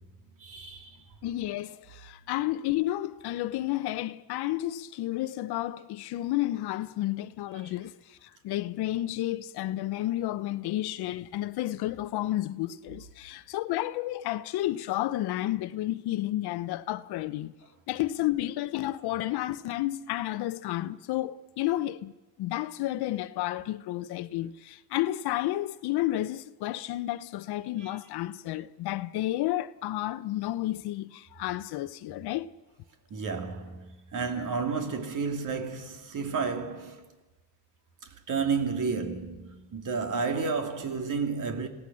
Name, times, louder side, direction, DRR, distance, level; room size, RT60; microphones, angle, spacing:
voice 1, 0.4-1.0 7.6-7.7 27.8-28.0 33.1-37.0 38.0-41.7, right 5 dB, 45° right, 3.0 m, -31 dB
voice 2, 1.2-17.5 17.9-22.1 22.4-32.5, left 15 dB, 65° left, 0.9 m, -31 dB
26.5 x 17.5 x 6.3 m
supercardioid pair, 95°, 42 cm